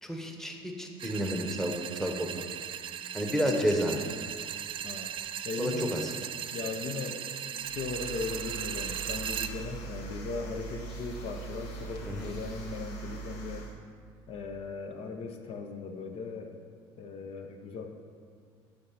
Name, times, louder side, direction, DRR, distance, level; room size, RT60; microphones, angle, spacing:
voice 1, 0.0-2.3 3.1-4.0 5.6-6.1 12.1-12.3, equal, 5° left, 2 dB, 1.0 m, -30 dB
sound 1, 1.0-9.5, right 9 dB, 45° right, 0.4 m, -38 dB
voice 2, 5.4-6.0 6.5-7.3 7.7-13.7 14.3-16.6 17.0-17.9, left 4 dB, 55° left, 5 dB, 0.8 m, -38 dB
sound 2, 7.6-13.7, right 4 dB, 75° left, 1.3 m, -41 dB
7.0 x 6.6 x 5.7 m, 2.1 s
supercardioid pair, 90°, 12 cm